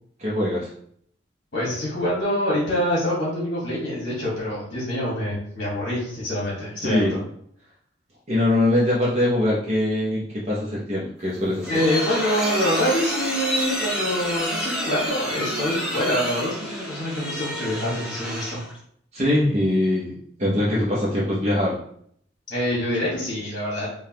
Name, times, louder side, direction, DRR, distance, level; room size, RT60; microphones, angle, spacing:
voice 1, 0.2-0.7 6.8-7.2 8.3-11.7 19.1-21.8, left 1 dB, 35° right, -6 dB, 0.7 m, -22 dB
voice 2, 1.5-7.2 11.7-18.6 22.5-23.9, equal, 50° left, -6 dB, 1.4 m, -25 dB
sound 1, 11.2-18.8, equal, 5° right, 0.8 m, -29 dB
5.0 x 2.3 x 2.8 m, 0.66 s
head